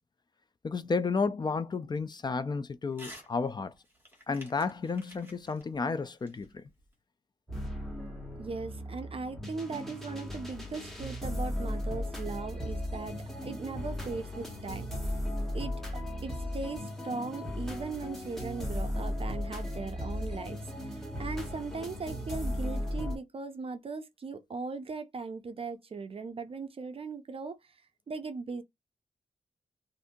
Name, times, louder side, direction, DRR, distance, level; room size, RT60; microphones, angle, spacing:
voice 1, 0.6-3.7 4.3-6.6, left 4 dB, 30° left, 0.3 m, -32 dB
Crumpling crinkling / Tearing, 2.9-3.3 3.6-7.0, equal, 15° right, 1.4 m, -52 dB
sound 1, 7.5-23.2, left 1 dB, 5° left, 1.3 m, -36 dB
voice 2, 8.4-15.1 15.5-15.7 16.2-27.6 28.1-28.6, right 4 dB, 45° right, 0.4 m, -39 dB
2.6 x 2.6 x 3.6 m
wide cardioid pair, 130°, 14 cm